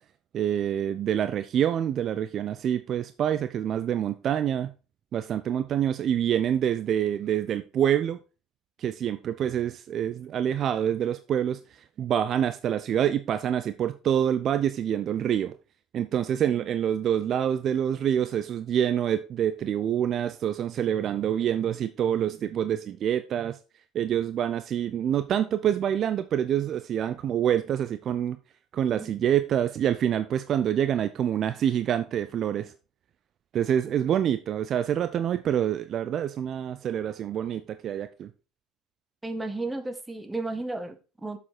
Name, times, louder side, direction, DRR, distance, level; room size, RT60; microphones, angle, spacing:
voice 1, 0.3-4.7 5.1-8.2 8.8-11.6 12.0-15.5 15.9-23.6 23.9-28.4 28.7-32.7 33.5-38.3, right 9 dB, 50° right, 0.6 m, -26 dB
voice 2, 39.2-41.4, right 2 dB, 10° right, 1.7 m, -33 dB
7.7 x 6.9 x 4.3 m
hypercardioid pair, 65°, 0 cm